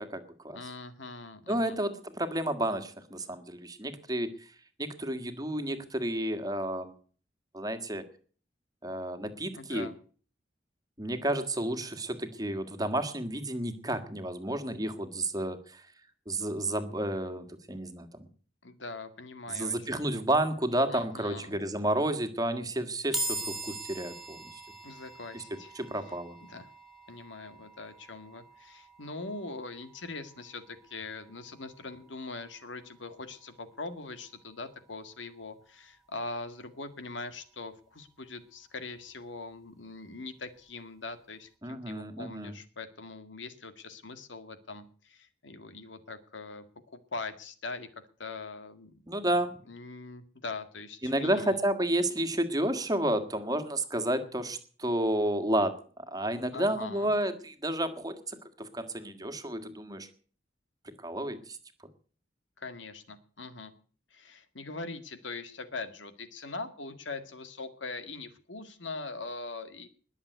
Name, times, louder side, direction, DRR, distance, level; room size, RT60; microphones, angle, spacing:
voice 1, 0.0-0.6 1.5-4.5 4.8-6.9 7.5-8.0 8.8-9.9 11.0-15.9 16.3-18.3 19.5-24.6 25.3-25.4 25.7-26.4 41.6-42.5 49.1-49.6 51.0-60.1 60.8-61.6, right 1 dB, 20° right, 9 dB, 1.7 m, -31 dB
voice 2, 0.5-1.8 9.6-9.9 18.6-20.2 20.9-21.5 24.8-25.7 26.4-26.7 27.1-46.6 46.9-47.9 48.2-49.0 49.7-51.6 56.5-57.1 62.6-63.7 64.1-69.9, left 3 dB, 85° left, 10 dB, 1.9 m, -42 dB
sound 1, 23.1-36.5, right 1 dB, ahead, 2.5 m, -43 dB
21.0 x 7.4 x 8.1 m, 0.44 s
head